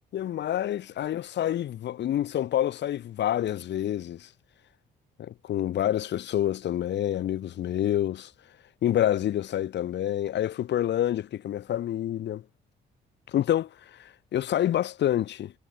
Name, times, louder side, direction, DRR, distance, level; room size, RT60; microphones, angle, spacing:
voice 1, 0.1-4.3 5.2-8.3 8.8-12.4 13.3-15.5, left 11 dB, 60° left, 0.8 m, -27 dB
cardioid pair, 90°, 20 cm